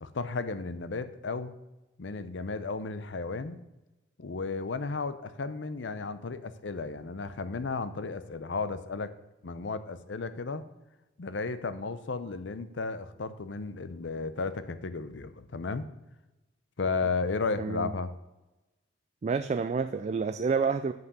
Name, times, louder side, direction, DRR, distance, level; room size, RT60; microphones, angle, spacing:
voice 1, 0.0-1.5 2.0-3.6 4.2-9.1 9.4-10.6 11.2-15.9 16.8-18.1, left 4 dB, 85° left, 13 dB, 0.6 m, -34 dB
voice 2, 17.6-17.9 19.2-20.9, right 5 dB, 40° right, 10 dB, 0.3 m, -28 dB
7.9 x 5.5 x 6.7 m, 1.0 s
head